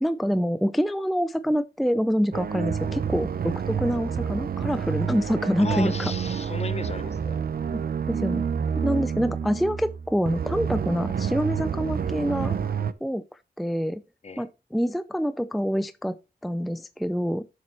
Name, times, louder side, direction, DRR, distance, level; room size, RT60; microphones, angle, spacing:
voice 1, 0.0-6.1 7.7-7.8 8.1-8.4 8.8-12.6 13.0-13.2 13.6-14.0 14.4-16.2 16.4-17.4, equal, ahead, 0.4 m, -26 dB
sound 1, 2.3-12.9, right 7 dB, 60° right, 0.6 m, -29 dB
voice 2, 5.6-7.4 14.2-14.4, left 4 dB, 40° left, 0.7 m, -35 dB
10.5 x 7.4 x 2.9 m
wide cardioid pair, 145°, 17 cm